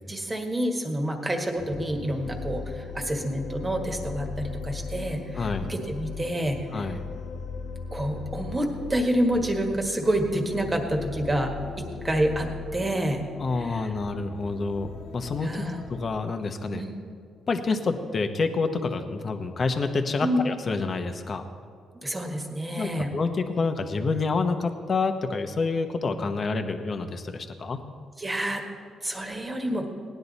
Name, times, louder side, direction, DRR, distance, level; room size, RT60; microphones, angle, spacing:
voice 1, 0.1-6.9 7.9-11.5 11.8-13.2 13.6-13.9 15.4-15.8 16.7-16.9 20.2-20.4 22.0-23.1 28.2-28.6 29.0-29.9, right 1 dB, 20° right, 3 dB, 1.6 m, -28 dB
sound 1, 1.6-16.0, left 5 dB, 80° left, 1.0 m, -38 dB
voice 2, 5.4-5.7 6.7-7.0 13.4-15.6 15.9-16.8 17.5-21.4 22.8-27.8, left 4 dB, 40° left, 7 dB, 1.0 m, -28 dB
17.5 x 10.5 x 4.1 m, 2.1 s
cardioid pair, 90°, 0 cm